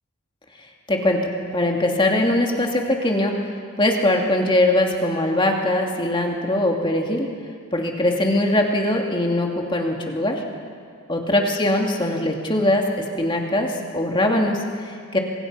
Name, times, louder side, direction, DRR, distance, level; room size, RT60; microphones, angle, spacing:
voice 1, 0.9-1.2 1.5-3.4 3.8-7.3 7.7-10.4 11.1-15.2, left 1 dB, 20° left, 1 dB, 2.5 m, -21 dB
28.0 x 25.0 x 5.8 m, 2.2 s
head